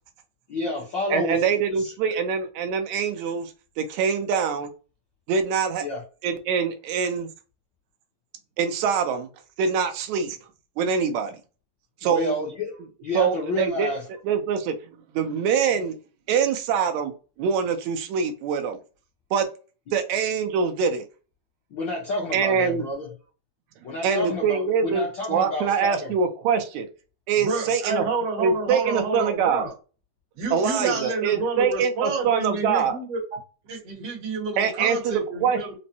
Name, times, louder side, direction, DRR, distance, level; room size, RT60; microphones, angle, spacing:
voice 1, 0.5-1.4 1.7-1.9 5.8-6.0 12.0-14.0 21.7-23.1 23.8-26.1, left 2 dB, 90° left, 1.0 m, -30 dB
voice 2, 1.1-3.5 3.8-4.7 5.3-5.9 6.2-7.3 8.6-9.3 9.6-10.4 10.8-11.4 12.0-12.4 13.1-13.9 14.3-14.8 15.1-16.0 16.3-17.1 17.4-18.8 19.3-19.5 19.9-21.1 22.3-22.8 24.0-26.9 27.3-28.0 28.4-29.6 30.5-33.0 34.6-35.8, right 6 dB, 80° right, 1.9 m, -24 dB
voice 3, 27.4-29.7 30.4-33.4 33.7-35.8, right 3 dB, 60° right, 2.1 m, -29 dB
5.2 x 2.0 x 2.7 m
omnidirectional pair, 3.4 m